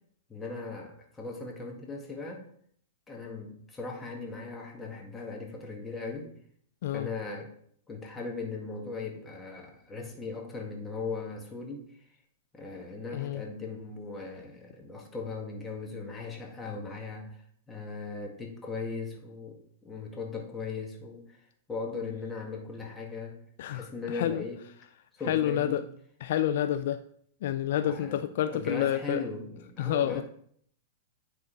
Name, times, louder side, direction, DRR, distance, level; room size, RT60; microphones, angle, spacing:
voice 1, 0.3-2.4 3.1-6.3 6.9-7.5 7.9-11.9 12.5-19.6 19.8-23.4 23.7-24.6 25.1-25.8 27.9-30.2, left 4 dB, 15° left, 0 dB, 1.8 m, -38 dB
voice 2, 13.1-13.4 23.6-24.4 25.3-25.8 26.2-27.0 27.4-29.2 29.8-30.2, left 11 dB, 65° left, 11 dB, 0.4 m, -29 dB
9.6 x 3.8 x 4.0 m, 0.63 s
hypercardioid pair, 115°, 0 cm